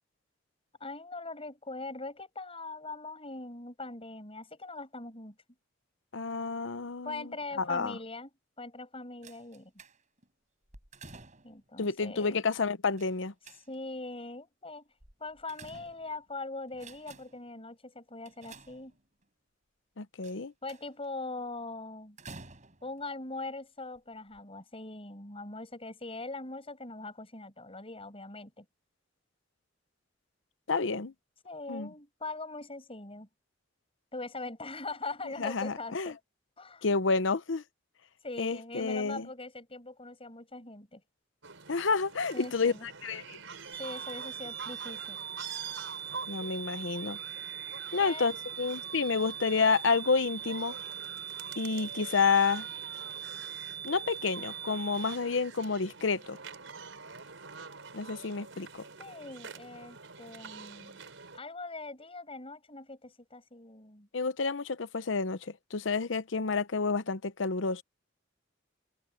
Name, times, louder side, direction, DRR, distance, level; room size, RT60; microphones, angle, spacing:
voice 1, 0.8-5.4 7.0-8.3 8.6-9.7 11.4-12.4 13.7-14.9 15.2-19.0 20.6-22.2 22.8-28.7 31.4-33.3 34.1-36.2 36.6-36.9 38.2-41.0 42.3-42.9 43.7-45.2 48.0-48.3 59.0-61.0 61.3-64.1, left 2 dB, 30° left, 7.8 m, -41 dB
voice 2, 6.1-7.3 7.6-8.0 11.8-13.3 20.0-20.5 30.7-31.1 31.7-31.9 35.4-36.1 36.8-37.6 38.4-39.3 41.7-42.7 43.0-43.4 46.3-47.2 47.9-50.8 51.6-52.7 53.8-56.4 57.9-58.8 64.1-67.8, left 4 dB, 70° left, 0.8 m, -29 dB
sound 1, 9.2-10.3 10.7-11.7 13.0-14.0 15.0-16.3 16.7-17.5 18.2-19.2 20.2-21.1 22.2-23.0 23.8-24.0 24.3-24.4, right 3 dB, 40° right, 6.5 m, -52 dB
sound 2, 41.4-61.4, right 5 dB, 85° right, 4.4 m, -47 dB
sound 3, 43.7-55.2, right 8 dB, 60° right, 0.9 m, -41 dB
head